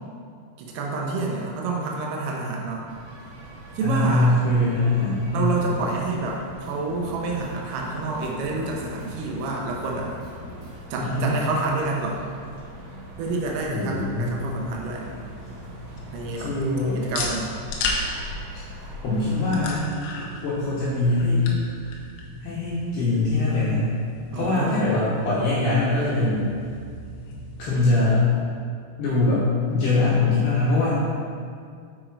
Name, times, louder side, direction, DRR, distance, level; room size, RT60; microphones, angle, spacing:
voice 1, 0.6-2.9 3.8-4.3 5.3-10.1 10.9-12.2 13.2-15.1 16.1-16.5 17.0-17.5 24.3-24.8, right 3 dB, 85° right, -1 dB, 3.3 m, -28 dB
sound 1, 2.9-19.9, right 1 dB, 65° right, 2.2 m, -42 dB
voice 2, 3.8-5.5 11.0-11.3 13.7-14.3 16.4-17.0 19.0-19.9 20.4-21.5 22.4-23.9 24.3-26.5 27.6-28.2 29.0-31.0, left 2 dB, 70° left, -9 dB, 2.6 m, -22 dB
sound 2, 5.3-10.8, left 1 dB, 50° right, 2.4 m, -43 dB
sound 3, 13.9-28.1, left 2 dB, 85° left, 2.3 m, -36 dB
7.7 x 4.9 x 4.5 m, 2.3 s
omnidirectional pair, 5.8 m